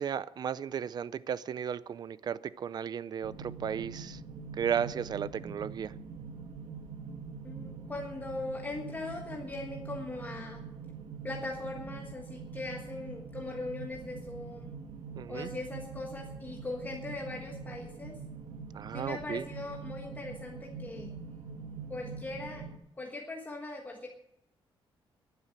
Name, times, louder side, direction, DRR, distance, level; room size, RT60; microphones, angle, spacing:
voice 1, 0.0-4.2 4.6-5.9 15.2-15.5 18.7-19.5, right 8 dB, 45° right, 17 dB, 0.5 m, -34 dB
sound 1, 3.2-22.8, right 5 dB, 80° right, 1.6 m, -44 dB
voice 2, 7.4-10.7 11.2-14.7 15.3-18.2 18.9-21.1 21.9-22.6 23.0-24.1, left 2 dB, 20° left, 1 dB, 1.5 m, -40 dB
11.5 x 9.9 x 8.9 m, 0.80 s
wide cardioid pair, 145°, 10 cm